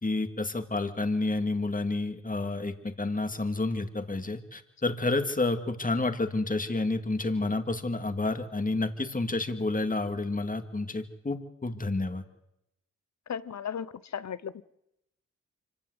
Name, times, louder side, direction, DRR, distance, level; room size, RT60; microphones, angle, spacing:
voice 1, 0.0-12.2, left 2 dB, 25° left, 7 dB, 2.3 m, -30 dB
voice 2, 13.3-13.9 14.1-14.6, left 8 dB, 55° left, 17 dB, 0.8 m, -35 dB
25.0 x 16.0 x 8.1 m, 0.85 s
cardioid pair, 55°, 32 cm